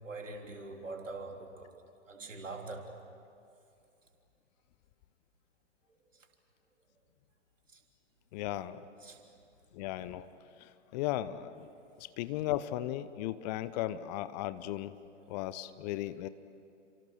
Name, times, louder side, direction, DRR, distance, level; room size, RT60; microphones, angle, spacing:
voice 1, 0.0-1.8 2.1-2.9 6.1-6.3 7.7-7.8 9.0-9.3, right 3 dB, 80° right, 3 dB, 3.6 m, -43 dB
voice 2, 8.3-8.8 9.7-10.3 10.6-11.7 12.0-14.9 15.3-16.3, left 14 dB, 35° left, 14 dB, 0.9 m, -36 dB
29.5 x 26.5 x 6.6 m, 2.5 s
figure-of-eight pair, 110°, 38 cm